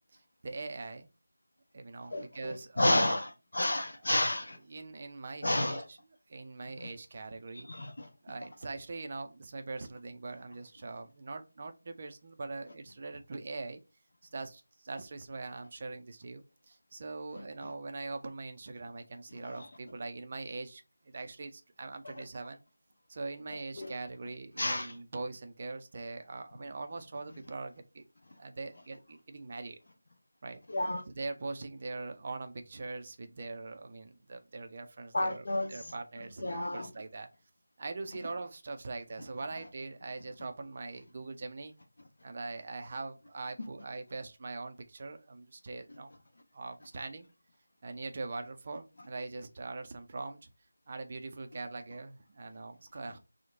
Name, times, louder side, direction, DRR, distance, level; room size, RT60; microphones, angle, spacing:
voice 1, 0.1-1.1 1.7-3.1 4.0-4.2 4.7-6.0 6.3-7.7 8.2-13.8 14.3-22.6 23.1-28.1 28.4-29.8 30.4-30.6 31.1-36.4 36.7-37.3 37.8-41.7 42.2-46.1 46.5-47.3 47.8-50.5 50.9-53.2, right 3 dB, 35° right, 0.4 m, -42 dB
voice 2, 2.1-4.6 5.4-5.8 7.7-8.1 19.4-19.5 23.8-23.9 24.6-24.9 30.7-31.0 35.1-35.7 36.4-36.9, left 1 dB, 50° left, 0.7 m, -30 dB
3.0 x 2.1 x 3.5 m
figure-of-eight pair, 165°, 0 cm